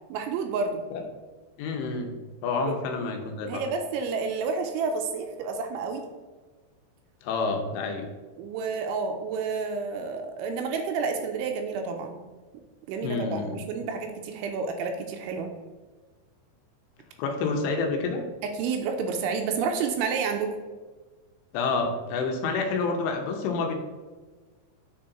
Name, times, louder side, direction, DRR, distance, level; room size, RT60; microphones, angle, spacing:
voice 1, 0.1-0.8 3.5-6.0 8.4-12.2 12.9-15.5 18.4-20.6, right 5 dB, 80° right, 5 dB, 2.8 m, -30 dB
voice 2, 1.6-2.1 2.4-3.6 7.2-8.1 13.0-13.6 17.2-18.3 21.5-23.7, left 4 dB, 85° left, 3 dB, 3.2 m, -28 dB
9.5 x 3.8 x 4.2 m, 1.3 s
omnidirectional pair, 5.7 m